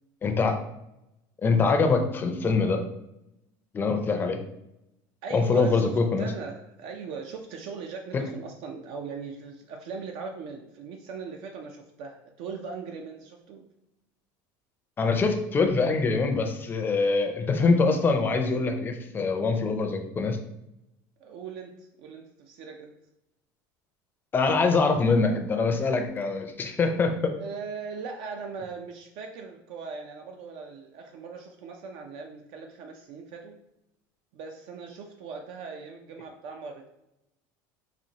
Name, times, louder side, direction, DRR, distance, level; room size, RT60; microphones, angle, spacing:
voice 1, 0.2-0.6 1.4-2.8 3.7-4.4 5.3-6.3 15.0-20.4 24.3-27.3, left 4 dB, 20° left, 5 dB, 0.5 m, -24 dB
voice 2, 5.2-5.9 6.2-13.7 21.2-22.9 27.4-33.5 34.3-36.9, right 5 dB, 65° right, 3 dB, 0.4 m, -39 dB
4.2 x 2.5 x 2.8 m, 0.87 s
supercardioid pair, 120°, 9 cm